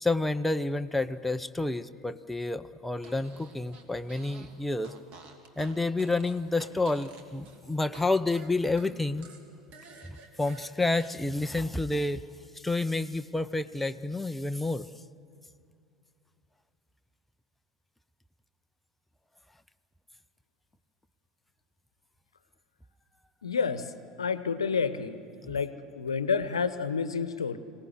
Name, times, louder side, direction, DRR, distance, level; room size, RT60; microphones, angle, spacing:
voice 1, 0.0-4.9 5.6-9.3 10.4-12.2 12.5-14.9 25.4-25.6, left 2 dB, 5° left, 10 dB, 0.6 m, -29 dB
Fart, 3.0-4.5 4.8-8.0 8.3-11.1, right 4 dB, 45° right, 2.7 m, -50 dB
voice 2, 23.4-23.9 24.2-25.2 25.5-27.6, left 5 dB, 75° left, 14 dB, 0.9 m, -29 dB
25.0 x 18.0 x 9.7 m, 2.5 s
figure-of-eight pair, 75°, 3 cm